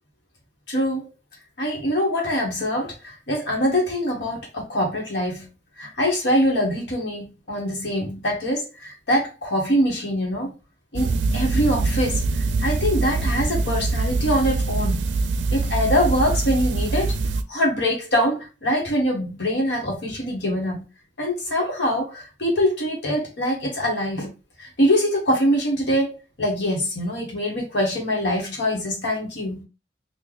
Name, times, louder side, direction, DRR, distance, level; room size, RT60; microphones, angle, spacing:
voice 1, 0.7-1.1 1.6-5.5 5.8-10.5 10.9-12.2 12.6-15.1 15.5-17.1 17.5-20.8 21.2-24.3 24.6-29.6, equal, 75° left, 1.3 m, -23 dB
sound 1, 10.9-17.4, right 3 dB, 85° right, 0.4 m, -24 dB
3.1 x 2.4 x 3.8 m
head